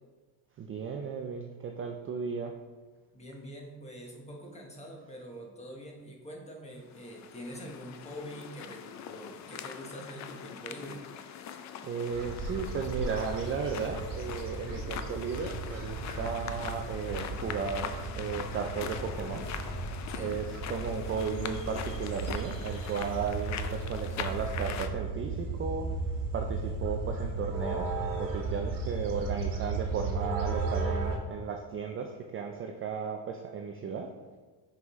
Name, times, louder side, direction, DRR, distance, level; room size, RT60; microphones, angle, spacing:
voice 1, 0.6-2.5 11.8-19.4 20.2-25.9 26.3-34.1, right 6 dB, 30° right, 3 dB, 0.4 m, -35 dB
voice 2, 3.1-11.0 20.1-20.4, equal, 15° left, 0 dB, 1.2 m, -45 dB
sound 1, 6.9-24.9, left 8 dB, 40° left, 0.4 m, -42 dB
sound 2, 12.1-31.2, right 3 dB, 45° right, 1.1 m, -35 dB
6.0 x 5.5 x 3.1 m, 1.4 s
cardioid pair, 120°, 45 cm